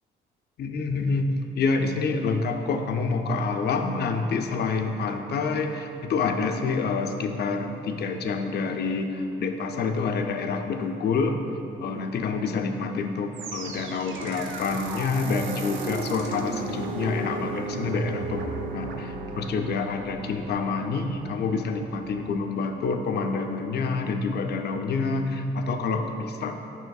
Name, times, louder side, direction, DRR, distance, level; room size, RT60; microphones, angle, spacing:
voice 1, 0.6-11.4 11.8-26.6, left 4 dB, 55° left, 5 dB, 0.5 m, -27 dB
sound 1, 13.3-22.5, right 3 dB, 75° right, 0.6 m, -36 dB
9.6 x 5.5 x 2.3 m, 2.9 s
cardioid pair, 90°, 20 cm